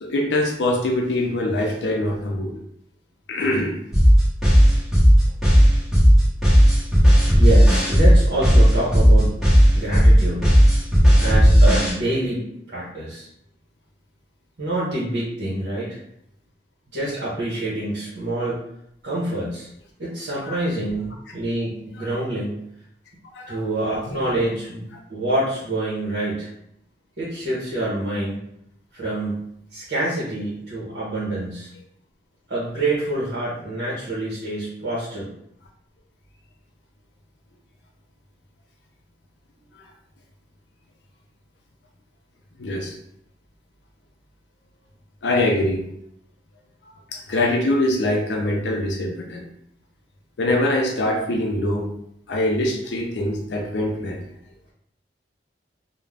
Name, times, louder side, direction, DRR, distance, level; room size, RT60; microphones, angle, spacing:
voice 1, 0.0-2.5 3.3-3.8 20.4-20.6 23.3-23.6 24.3-24.4 42.6-42.9 45.2-45.8 47.1-49.4 50.4-51.9 52.3-54.2, left 1 dB, 80° left, 1 dB, 0.5 m, -23 dB
sound 1, 3.9-11.9, equal, ahead, 0.8 m, -13 dB
voice 2, 7.4-9.3 9.7-10.5 11.2-13.3 14.6-16.0 16.9-18.6 19.0-19.7 20.0-22.6 23.5-26.5 27.2-28.4 28.9-31.7 32.5-35.3, right 1 dB, 70° right, -7 dB, 0.8 m, -26 dB
2.4 x 2.1 x 3.2 m, 0.74 s
head